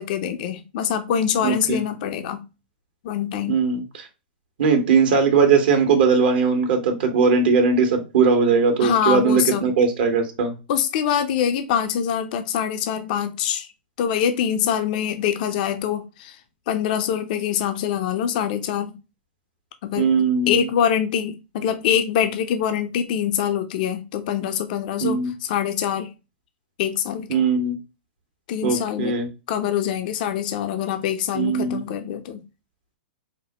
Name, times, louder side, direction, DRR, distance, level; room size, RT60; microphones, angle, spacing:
voice 1, 0.0-2.4 3.0-3.6 8.8-9.7 10.7-13.7 14.0-16.3 16.7-18.9 19.8-20.1 20.5-26.1 26.8-27.3 28.5-29.1 29.5-32.4, left 9 dB, 55° left, 0.6 m, -24 dB
voice 2, 1.4-1.8 3.5-4.1 4.6-10.5 20.0-20.7 25.0-25.3 27.3-27.7 28.6-29.3 31.3-31.8, right 5 dB, 65° right, 1.2 m, -19 dB
5.1 x 2.1 x 2.9 m
hypercardioid pair, 120°, 5 cm